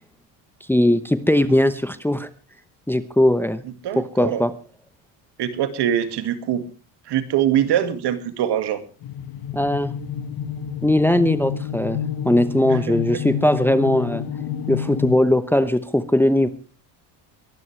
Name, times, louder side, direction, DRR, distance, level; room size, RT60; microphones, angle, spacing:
voice 1, 0.7-2.3 2.9-3.6 4.0-4.5 9.5-9.9 10.8-14.2 14.7-16.5, left 1 dB, 5° left, 12 dB, 1.0 m, -19 dB
voice 2, 3.8-4.4 5.4-6.6 7.1-8.8 12.7-13.2, right 10 dB, 60° right, 10 dB, 2.2 m, -23 dB
sound 1, 9.0-15.2, left 8 dB, 50° left, 1.5 m, -29 dB
23.5 x 12.0 x 3.3 m, 0.36 s
cardioid pair, 115°, 46 cm